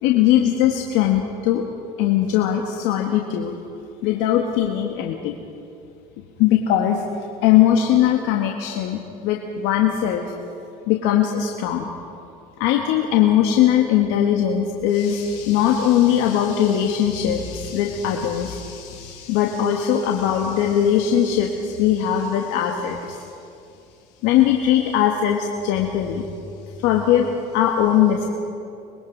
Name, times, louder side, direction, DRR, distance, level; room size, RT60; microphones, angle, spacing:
voice 1, 0.0-1.6 2.0-3.6 4.0-5.3 6.4-7.0 7.4-10.3 10.9-11.9 12.6-23.3 24.2-26.2 26.8-28.3, left 10 dB, 75° left, 1 dB, 1.7 m, -20 dB
24.5 x 21.0 x 5.2 m, 2.6 s
supercardioid pair, 85°, 20 cm